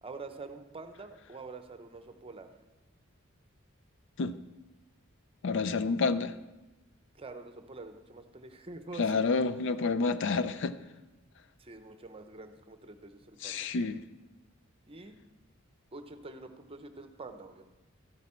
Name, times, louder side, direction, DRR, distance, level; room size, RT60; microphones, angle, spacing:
voice 1, 0.0-2.5 7.1-9.2 11.6-13.7 14.9-15.2 15.9-17.6, right 3 dB, 30° right, 8 dB, 0.7 m, -46 dB
voice 2, 5.4-6.3 9.0-10.8 13.4-14.0, left 4 dB, 60° left, 13 dB, 0.4 m, -29 dB
13.5 x 8.2 x 4.3 m, 1.1 s
head